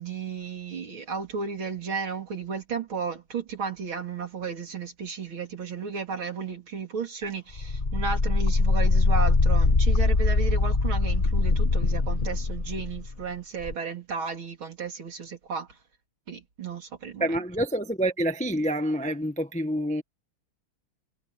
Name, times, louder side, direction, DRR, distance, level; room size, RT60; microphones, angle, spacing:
voice 1, 0.0-15.7 16.3-17.4, right 5 dB, 65° right, 3.9 m, -34 dB
sound 1, 7.6-13.1 13.6-13.7, left 3 dB, 25° left, 1.6 m, -22 dB
voice 2, 17.2-20.0, right 1 dB, 5° left, 1.0 m, -27 dB
omnidirectional pair, 2.4 m